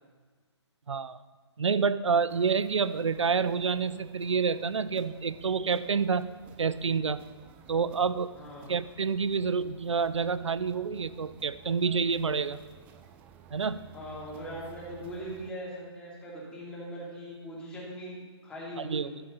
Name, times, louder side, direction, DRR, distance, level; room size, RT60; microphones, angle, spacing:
voice 1, 0.9-1.2 1.6-6.3 6.6-7.2 7.7-8.3 8.7-12.6 13.5-13.9 18.8-19.1, right 5 dB, 85° right, 15 dB, 0.5 m, -28 dB
sound 1, 2.3-15.5, right 8 dB, 10° right, 0.3 m, -54 dB
voice 2, 8.4-8.7 13.9-18.2 18.4-19.2, equal, 5° left, -6 dB, 2.8 m, -40 dB
12.0 x 10.5 x 3.9 m, 1.5 s
hypercardioid pair, 145°, 15 cm